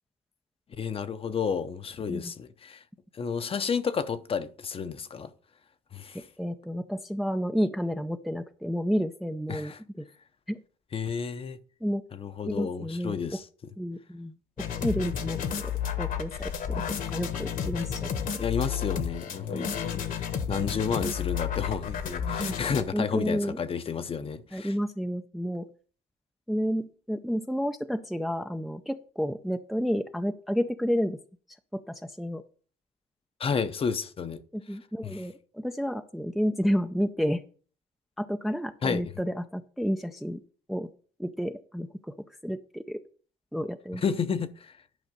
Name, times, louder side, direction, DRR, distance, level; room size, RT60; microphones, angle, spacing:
voice 1, 0.7-2.8 3.2-5.3 5.9-6.2 9.5-9.8 10.9-11.6 12.1-13.4 18.4-24.7 33.4-34.4 35.0-35.2 38.8-39.0 44.0-44.8, left 6 dB, 35° left, 0.7 m, -31 dB
voice 2, 6.4-10.0 10.5-10.6 11.8-12.0 12.4-13.4 13.8-14.4 14.8-15.7 16.0-16.8 17.1-18.4 19.5-19.7 22.4-22.6 22.9-23.6 24.5-25.7 26.5-31.2 31.7-32.4 34.5-37.4 38.2-40.4 40.7-40.9 41.2-42.1 42.4-43.0 43.5-44.0, equal, ahead, 0.5 m, -30 dB
sound 1, 14.6-22.8, left 8 dB, 55° left, 1.2 m, -31 dB
11.0 x 5.1 x 5.2 m
cardioid pair, 110°, 17 cm